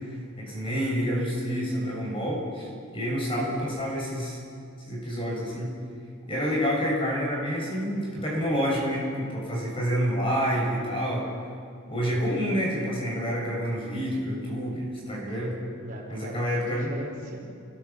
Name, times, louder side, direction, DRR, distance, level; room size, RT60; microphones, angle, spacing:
voice 1, 0.4-4.4 4.8-5.7 6.3-11.3 11.9-15.5 16.1-16.9, equal, 25° left, -3 dB, 7.2 m, -28 dB
voice 2, 12.0-12.3 15.4-17.4, right 1 dB, 40° right, -2 dB, 4.7 m, -38 dB
29.5 x 22.5 x 6.0 m, 2.4 s
head